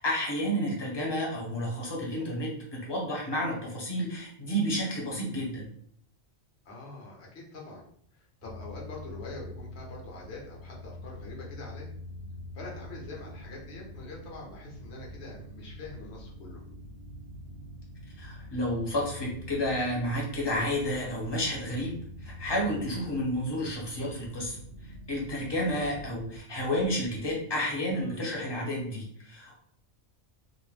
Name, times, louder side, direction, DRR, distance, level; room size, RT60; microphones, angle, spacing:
voice 1, 0.0-5.7 18.2-21.9 22.2-29.6, equal, 25° left, -3 dB, 0.7 m, -31 dB
voice 2, 6.6-7.8 8.1-11.9 12.5-16.6 27.9-28.3, left 3 dB, 70° left, -2 dB, 1.0 m, -44 dB
sound 1, 8.4-26.4, left 1 dB, 60° right, 0.9 m, -45 dB
2.5 x 2.1 x 3.2 m, 0.66 s
omnidirectional pair, 1.2 m